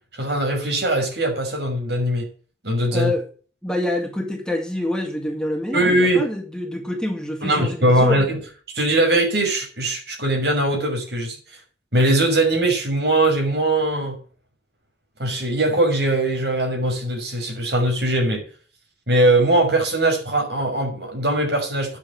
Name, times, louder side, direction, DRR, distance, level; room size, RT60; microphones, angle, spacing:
voice 1, 0.1-2.3 2.6-3.1 5.7-6.2 7.4-8.4 8.7-11.4 11.9-14.2 15.2-18.4 19.1-22.0, right 1 dB, 65° right, 6.3 m, -20 dB
voice 2, 2.9-3.3 3.6-8.3, left 1 dB, 5° left, 2.0 m, -26 dB
9.9 x 7.0 x 8.9 m
head